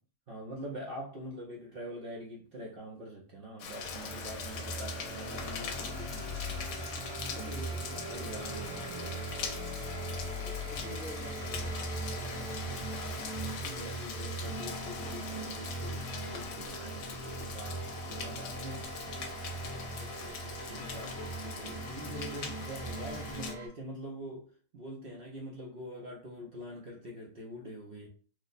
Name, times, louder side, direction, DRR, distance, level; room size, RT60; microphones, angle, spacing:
voice 1, 0.3-6.9 7.4-7.6 8.1-9.2 13.6-16.1 16.3-18.9 20.7-24.5 24.7-28.1, equal, 55° right, 0.7 m, -44 dB
Rain, 3.6-23.5, left 6 dB, 75° left, 1.0 m, -42 dB
sound 1, 3.8-23.7, right 2 dB, 90° right, 1.4 m, -40 dB
voice 2, 7.2-8.4 10.0-14.1 19.6-21.1 21.6-21.7, left 1 dB, 50° left, 0.7 m, -50 dB
3.1 x 2.0 x 4.0 m
omnidirectional pair, 1.6 m